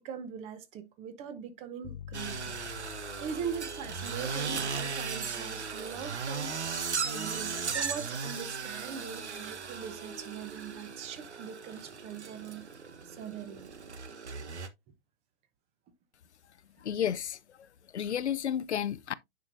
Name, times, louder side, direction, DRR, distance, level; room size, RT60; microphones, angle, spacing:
voice 1, 0.0-2.6 3.2-12.7 13.1-13.7, right 7 dB, 20° right, 0.8 m, -41 dB
sound 1, 1.8-10.8, left 11 dB, 30° left, 0.4 m, -51 dB
sound 2, 2.1-14.7, right 5 dB, 90° right, 1.2 m, -37 dB
voice 2, 16.8-17.7 17.9-19.1, left 9 dB, 85° left, 0.6 m, -32 dB
9.3 x 5.1 x 2.5 m
hypercardioid pair, 135°, 33 cm